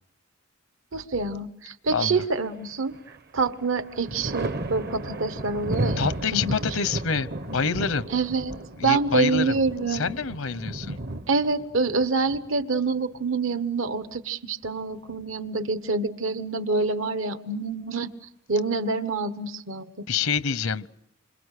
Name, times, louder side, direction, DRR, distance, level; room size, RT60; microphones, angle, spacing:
voice 1, 0.9-3.0 3.3-6.6 8.1-8.6 8.8-10.1 11.3-18.1 18.5-19.9, right 4 dB, 70° right, 11 dB, 1.2 m, -26 dB
voice 2, 1.9-2.2 6.0-8.1 8.8-9.6 9.9-11.0 20.1-20.9, left 5 dB, 80° left, 15 dB, 0.9 m, -27 dB
Thunder, 2.4-3.2 3.6-13.2 14.6-15.5, right 1 dB, 50° right, 0.9 m, -34 dB
28.0 x 25.5 x 6.6 m, 0.79 s
head